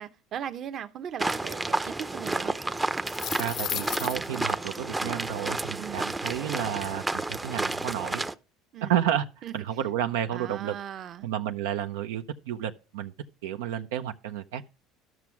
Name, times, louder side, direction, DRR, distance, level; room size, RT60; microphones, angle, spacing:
voice 1, 0.0-2.6 5.8-6.0 8.7-9.0 9.4-9.5 10.3-11.3, right 9 dB, 50° right, 0.9 m, -38 dB
sound 1, 1.2-8.3, right 2 dB, 15° right, 0.6 m, -31 dB
sound 2, 3.0-4.4, left 10 dB, 50° left, 0.4 m, -34 dB
voice 2, 3.4-8.2 8.8-10.8 11.2-13.1 13.4-14.7, right 10 dB, 90° right, 0.6 m, -31 dB
12.5 x 6.1 x 4.6 m
supercardioid pair, 100°, 0 cm